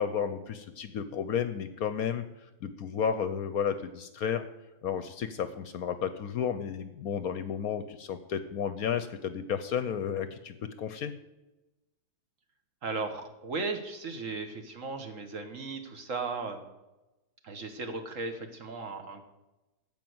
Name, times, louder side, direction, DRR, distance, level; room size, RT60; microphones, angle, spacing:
voice 1, 0.0-2.2 2.6-4.4 4.8-11.1, left 7 dB, 65° left, 11 dB, 1.0 m, -32 dB
voice 2, 12.8-16.6 17.4-19.2, right 3 dB, 50° right, 6 dB, 1.4 m, -36 dB
14.5 x 5.3 x 7.8 m, 1.0 s
omnidirectional pair, 1.9 m